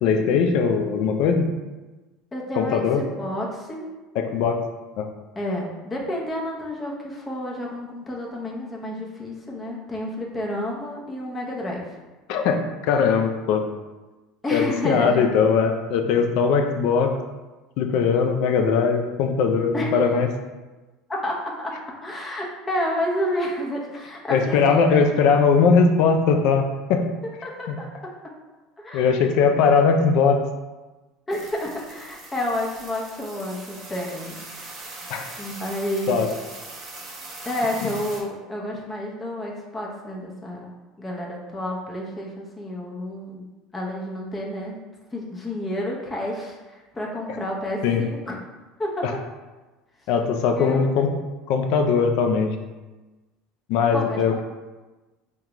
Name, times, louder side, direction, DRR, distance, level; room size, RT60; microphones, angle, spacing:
voice 1, 0.0-1.5 2.6-3.0 4.2-4.6 5.0-5.1 12.3-13.7 14.5-17.1 17.8-20.3 24.3-26.6 26.9-27.0 27.7-27.8 28.9-30.4 35.1-35.3 36.1-36.3 37.8-37.9 47.8-48.0 49.0-49.1 50.1-51.1 51.5-52.6 53.7-54.4, left 5 dB, 70° left, 5 dB, 0.4 m, -20 dB
voice 2, 2.3-3.9 5.3-11.9 14.4-15.3 19.7-20.0 21.2-21.8 22.0-25.1 27.4-27.9 28.8-29.3 31.3-34.4 35.4-36.3 37.4-40.7 41.0-44.8 45.1-48.4 48.8-49.1 50.6-51.1 53.9-54.4, left 1 dB, 20° left, -2 dB, 0.7 m, -30 dB
sound 1, 31.3-38.2, right 2 dB, 35° right, 0.8 m, -40 dB
3.6 x 2.2 x 2.9 m, 1.2 s
supercardioid pair, 105°, 0 cm